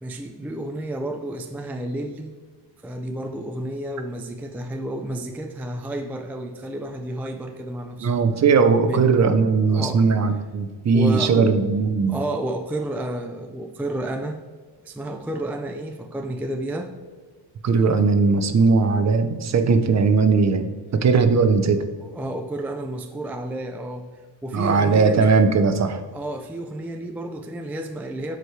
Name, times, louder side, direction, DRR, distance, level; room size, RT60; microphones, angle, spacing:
voice 1, 0.0-2.3 2.8-8.1 8.8-9.3 9.7-10.1 10.9-11.7 12.1-14.4 14.8-16.9 22.0-25.3 26.1-28.4, right 1 dB, 5° right, 4 dB, 0.3 m, -31 dB
voice 2, 8.0-12.1 17.6-20.7 21.0-21.8 24.5-26.0, right 4 dB, 40° right, 8 dB, 0.7 m, -18 dB
12.5 x 5.0 x 3.2 m, 1.5 s
cardioid pair, 140°, 44 cm